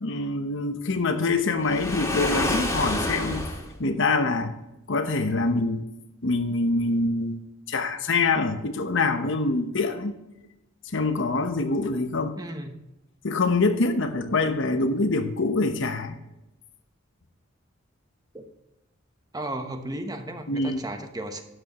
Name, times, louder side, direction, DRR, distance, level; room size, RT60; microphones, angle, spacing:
voice 1, 0.0-3.4 3.8-4.6 4.9-5.9 6.2-7.4 7.7-10.1 10.9-12.4 13.2-16.2 20.5-20.8, left 3 dB, 65° left, 1.0 m, -25 dB
Waves surf, 1.6-3.7, left 1 dB, 15° left, 2.3 m, -28 dB
voice 2, 12.4-12.8 18.3-18.5 19.3-21.4, right 1 dB, 20° right, 1.1 m, -34 dB
12.5 x 9.1 x 3.1 m
head